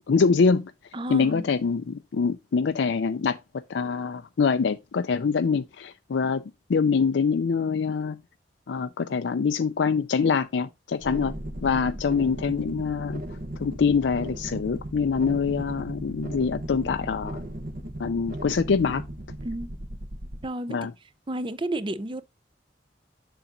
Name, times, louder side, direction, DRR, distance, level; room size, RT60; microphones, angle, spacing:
voice 1, 0.1-0.7 1.1-3.4 3.7-6.4 6.7-8.2 8.7-11.3 11.6-13.2 13.6-17.4 18.0-19.0 20.7-20.9, left 5 dB, 90° left, 0.4 m, -24 dB
voice 2, 0.9-1.5 19.4-19.7 20.4-20.8 21.3-22.2, right 1 dB, 30° right, 0.5 m, -31 dB
sound 1, 11.0-20.5, right 1 dB, 50° right, 0.9 m, -37 dB
7.0 x 6.9 x 2.5 m
head